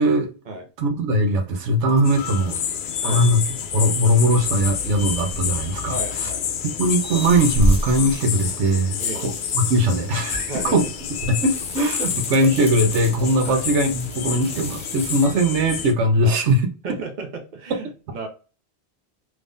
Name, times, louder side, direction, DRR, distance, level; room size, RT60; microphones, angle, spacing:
voice 1, 0.8-2.6 3.0-3.4 3.7-6.3 6.8-10.8 11.3-16.6, right 1 dB, 90° right, 1.1 m, -20 dB
sound 1, 1.9-2.9 4.6-6.2 6.6-15.3, equal, 5° left, 0.8 m, -31 dB
sound 2, 2.0-15.9, left 8 dB, 60° left, 0.6 m, -29 dB
voice 2, 5.9-6.4 9.0-9.3 10.5-10.9 11.8-12.1 13.4-13.6 16.2-16.4 16.8-18.3, right 3 dB, 45° right, 1.0 m, -33 dB
3.5 x 3.1 x 2.5 m
omnidirectional pair, 1.1 m